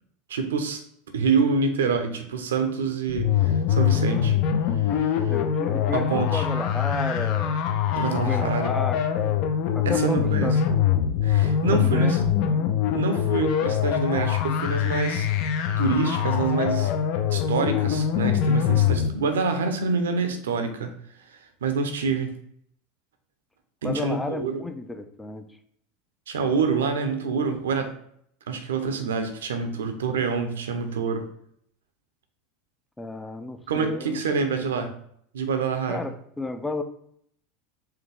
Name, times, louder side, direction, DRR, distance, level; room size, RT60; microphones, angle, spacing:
voice 1, 0.3-0.8 1.1-4.4 4.9-5.1 5.9-6.5 8.0-8.7 9.8-10.5 11.2-12.2 12.9-15.3 15.8-16.9 17.3-20.9 21.3-22.4 23.8-24.6 26.3-27.9 28.5-31.3 33.7-34.9 35.3-36.0, right 5 dB, 75° right, 7 dB, 0.7 m, -26 dB
sound 1, 3.1-19.1, left 8 dB, 55° left, 0.6 m, -23 dB
voice 2, 5.3-7.6 8.2-9.3 9.7-10.6 11.7-12.1 12.4-12.7 23.8-25.5 33.0-34.2 34.7-35.0 35.9-36.8, left 2 dB, 10° left, 8 dB, 0.5 m, -32 dB
4.8 x 3.0 x 3.4 m, 0.67 s
hypercardioid pair, 85°, 0 cm